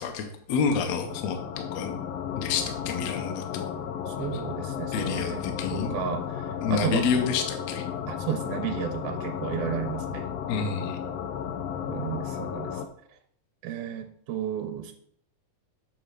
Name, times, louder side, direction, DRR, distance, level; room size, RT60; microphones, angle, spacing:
voice 1, 0.0-1.4 1.7-2.0 2.4-3.7 4.9-5.9 6.6-7.8 10.5-11.0, left 6 dB, 70° left, 5 dB, 1.9 m, -28 dB
sound 1, 1.1-12.9, left 8 dB, 90° left, 1.4 m, -34 dB
voice 2, 4.1-7.1 8.1-10.3 11.9-12.9 13.6-14.9, right 9 dB, 85° right, 5 dB, 2.1 m, -33 dB
7.4 x 4.4 x 6.6 m, 0.65 s
omnidirectional pair, 3.6 m